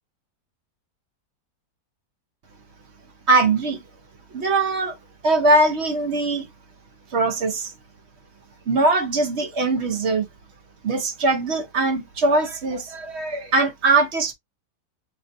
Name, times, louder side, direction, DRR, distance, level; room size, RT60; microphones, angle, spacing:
voice 1, 3.3-3.8 4.3-5.0 5.2-6.5 7.1-7.7 8.7-10.3 10.8-14.3, right 2 dB, 55° right, 0.8 m, -21 dB
6.5 x 2.5 x 2.6 m
omnidirectional pair, 1.8 m